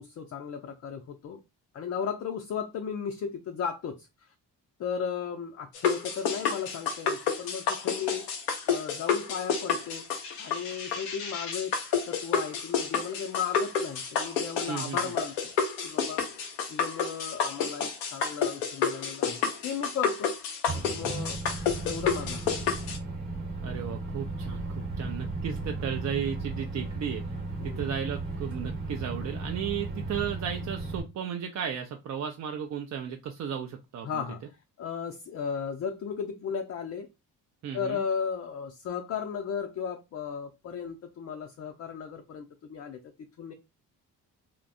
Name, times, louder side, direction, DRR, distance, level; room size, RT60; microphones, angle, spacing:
voice 1, 0.0-1.4 1.7-4.1 4.8-8.3 8.7-10.0 10.4-15.5 15.8-16.2 16.7-20.3 20.7-21.4 21.8-22.5 27.6-27.9 34.0-37.1 37.7-43.0 43.4-43.5, left 7 dB, 35° left, 0.5 m, -35 dB
sound 1, 5.7-23.0, left 6 dB, 85° left, 0.6 m, -30 dB
voice 2, 14.7-15.1 23.6-27.2 27.6-34.2 37.6-38.0, right 8 dB, 40° right, 0.4 m, -34 dB
Microwave oven, 20.7-31.0, right 3 dB, 85° right, 0.9 m, -35 dB
2.5 x 2.1 x 2.5 m
hypercardioid pair, 40°, 47 cm